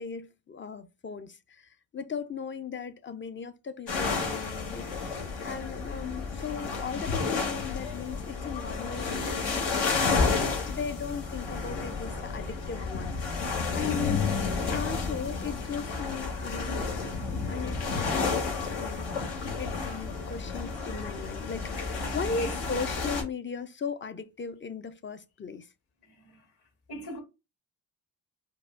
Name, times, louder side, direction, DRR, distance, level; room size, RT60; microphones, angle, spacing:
voice 1, 0.0-14.3 14.7-16.9 17.5-25.7, left 6 dB, 30° left, 0.4 m, -38 dB
sound 1, 3.9-23.2, left 4 dB, 85° left, 1.2 m, -31 dB
voice 2, 22.2-22.6 26.1-26.5 26.9-27.2, left 1 dB, 65° left, 1.8 m, -41 dB
4.7 x 2.1 x 2.4 m
cardioid pair, 60°, 42 cm